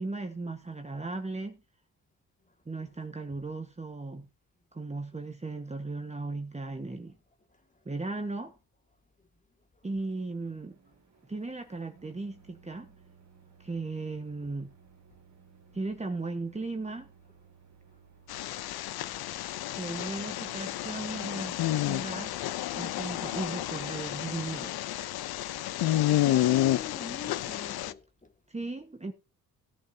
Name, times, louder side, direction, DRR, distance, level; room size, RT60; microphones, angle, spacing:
voice 1, 0.0-1.6 2.7-4.3 4.7-7.2 7.8-8.5 9.8-10.7 11.3-12.9 13.6-14.7 15.7-17.1 19.7-21.6 21.9-22.3 22.7-24.9 28.5-29.1, right 3 dB, 15° right, 1.4 m, -36 dB
Microwave oven, 9.8-22.4 22.8-23.0 23.9-24.1 25.0-25.1 26.1-26.2, right 6 dB, 45° right, 2.2 m, -59 dB
sound 1, 18.3-27.9, left 14 dB, 75° left, 0.6 m, -30 dB
voice 2, 26.1-28.3, left 4 dB, 20° left, 2.1 m, -43 dB
17.0 x 7.9 x 2.8 m
cardioid pair, 75°, 38 cm